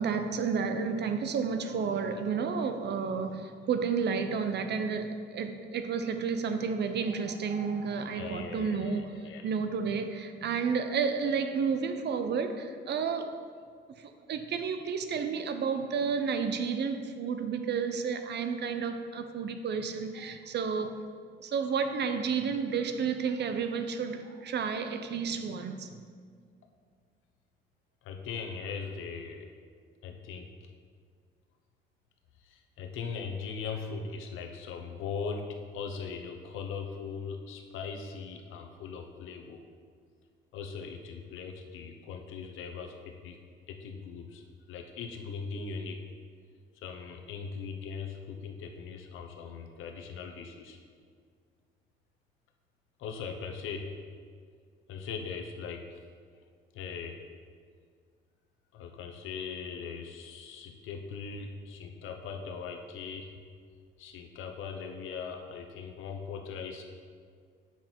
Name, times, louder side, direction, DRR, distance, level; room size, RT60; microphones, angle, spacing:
voice 1, 0.0-9.1 9.4-13.4 14.0-21.0 21.4-25.9, right 6 dB, 60° right, 8 dB, 0.7 m, -31 dB
voice 2, 8.1-9.5 28.0-29.5 30.0-30.5 32.4-39.6 40.5-43.4 43.7-46.0 46.8-50.8 53.0-53.9 54.9-56.0 56.7-57.2 58.7-63.4 64.0-66.9, left 5 dB, 85° left, 3 dB, 0.9 m, -40 dB
7.3 x 5.8 x 4.5 m, 2.1 s
cardioid pair, 90°, 20 cm